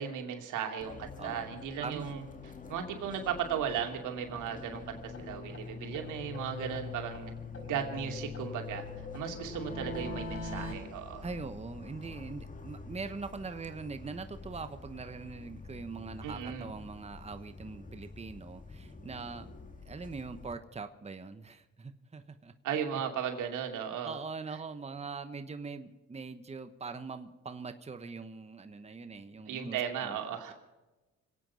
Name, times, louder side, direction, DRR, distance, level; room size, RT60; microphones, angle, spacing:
voice 1, 0.0-2.2 2.7-7.3 7.6-8.8 9.1-11.3 16.2-16.7 22.6-24.2 29.5-30.5, right 8 dB, 85° right, 4 dB, 2.5 m, -36 dB
Fixed-wing aircraft airplane, 0.8-20.5, left 4 dB, 25° left, 2.0 m, -46 dB
voice 2, 1.8-2.2 11.2-19.5 19.8-22.5 24.0-30.2, right 4 dB, 20° right, 9 dB, 1.1 m, -42 dB
sound 1, 4.3-4.4 4.7-4.8 5.1-5.2 5.5-5.6 5.9-7.2 7.5-10.7, left 1 dB, 45° left, 5.6 m, -42 dB
26.5 x 9.1 x 5.6 m, 1.1 s
cardioid pair, 90°, 30 cm